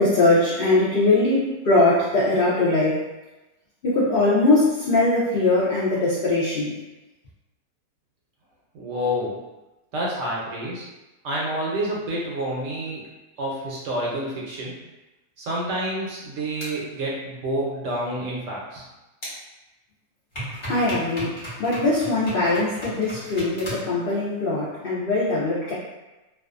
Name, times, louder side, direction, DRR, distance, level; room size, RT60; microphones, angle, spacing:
voice 1, 0.0-3.0 3.8-6.8 20.7-21.3 21.6-25.7, left 2 dB, 70° left, -8 dB, 0.5 m, -21 dB
voice 2, 8.7-9.4 9.9-10.8 11.2-13.0 13.4-14.7 15.4-18.8, right 1 dB, 70° right, -4 dB, 0.9 m, -28 dB
sound 1, 16.6-16.7 19.2-19.3 20.3-23.9, equal, 25° left, 0.6 m, -35 dB
2.5 x 2.3 x 2.4 m, 1.1 s
omnidirectional pair, 1.6 m